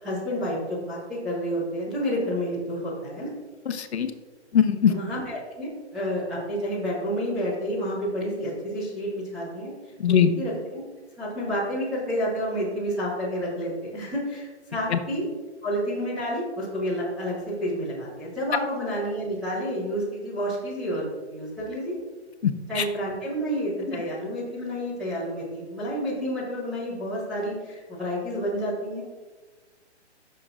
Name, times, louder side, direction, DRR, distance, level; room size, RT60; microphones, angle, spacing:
voice 1, 0.0-3.3 4.9-9.7 10.1-10.8 11.2-15.2 15.6-21.9 22.7-29.0, equal, ahead, -12 dB, 0.4 m, -29 dB
voice 2, 3.7-4.1 4.5-4.9 10.0-10.3 14.9-15.0 22.4-22.8 23.9-24.0, left 8 dB, 65° left, 7 dB, 1.0 m, -21 dB
14.0 x 6.8 x 2.5 m, 1.3 s
hypercardioid pair, 160°, 34 cm